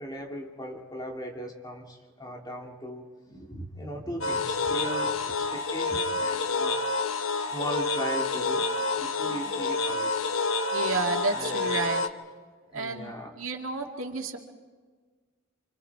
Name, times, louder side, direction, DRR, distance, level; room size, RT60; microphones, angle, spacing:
voice 1, 0.0-6.9 7.4-8.7 9.0-10.1 11.3-11.7 12.7-13.4, equal, 20° left, 1 dB, 2.5 m, -38 dB
sound 1, 4.2-12.1, left 3 dB, 90° left, 1.0 m, -28 dB
voice 2, 9.3-9.6 10.7-12.0 12.7-14.4, right 3 dB, 90° right, 2 dB, 2.3 m, -31 dB
28.5 x 25.5 x 4.7 m, 1.4 s
head